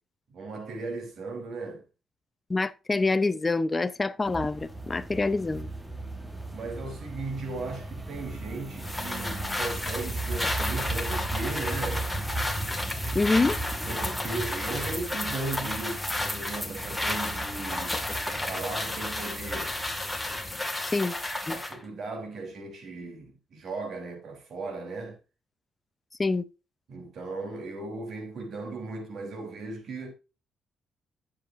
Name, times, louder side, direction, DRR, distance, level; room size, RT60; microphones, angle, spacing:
voice 1, 0.3-1.8 6.5-12.1 13.8-18.0 18.3-19.7 21.5-25.2 26.9-30.1, right 3 dB, 60° right, 3.3 m, -37 dB
voice 2, 2.5-5.7 13.1-13.6 20.8-21.1 21.5-21.6 26.2-26.4, left 3 dB, 25° left, 0.7 m, -26 dB
sound 1, 4.2-20.6, right 2 dB, 10° right, 1.4 m, -37 dB
sound 2, 8.8-21.8, left 1 dB, 5° left, 2.0 m, -32 dB
10.0 x 7.4 x 2.6 m
cardioid pair, 90°, 0 cm